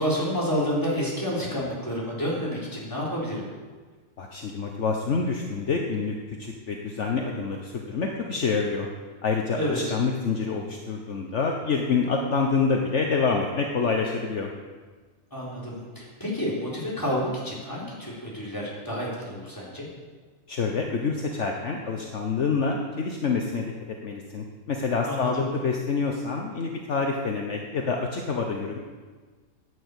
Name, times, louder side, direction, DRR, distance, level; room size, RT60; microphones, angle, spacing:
voice 1, 0.0-3.4 9.6-10.0 15.3-19.9 25.0-25.4, equal, 15° left, -5 dB, 4.1 m, -29 dB
voice 2, 4.2-8.9 9.2-14.5 20.5-23.7 24.0-28.8, left 4 dB, 60° left, 1 dB, 1.4 m, -27 dB
11.0 x 9.2 x 8.1 m, 1.4 s
omnidirectional pair, 1.4 m